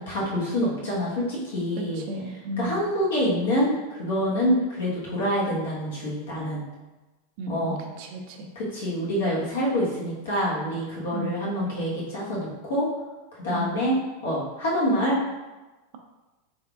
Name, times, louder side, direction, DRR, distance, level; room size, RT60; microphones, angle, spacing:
voice 1, 0.0-2.0 2.6-6.6 7.5-7.8 8.5-12.9 13.4-13.9 14.2-15.2, equal, 75° left, -5 dB, 1.3 m, -26 dB
voice 2, 1.8-2.8 7.4-8.5 11.1-11.4 13.5-13.8, equal, 55° right, 3 dB, 0.5 m, -34 dB
3.5 x 3.4 x 2.4 m, 1.1 s
hypercardioid pair, 95°, 0 cm